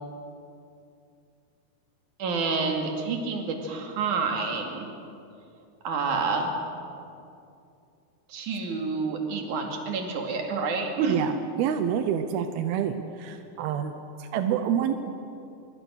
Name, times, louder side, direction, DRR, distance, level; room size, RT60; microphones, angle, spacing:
voice 1, 2.2-4.9 5.8-6.5 8.3-11.2, right 4 dB, 45° right, 2 dB, 3.2 m, -28 dB
voice 2, 11.1-13.9 14.2-15.2, right 8 dB, 80° right, 8 dB, 2.2 m, -27 dB
24.5 x 23.5 x 6.5 m, 2.6 s
omnidirectional pair, 5.7 m